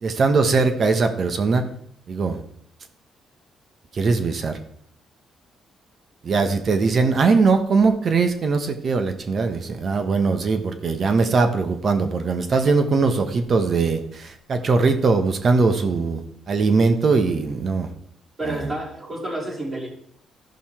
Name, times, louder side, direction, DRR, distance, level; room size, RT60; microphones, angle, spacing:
voice 1, 0.0-1.6 2.1-2.4 3.9-4.6 6.2-17.9 18.5-18.7, right 4 dB, 50° right, 7 dB, 1.3 m, -20 dB
voice 2, 18.4-19.9, right 1 dB, 30° right, -7 dB, 3.3 m, -29 dB
14.5 x 5.5 x 4.5 m, 0.66 s
cardioid pair, 90°, 0 cm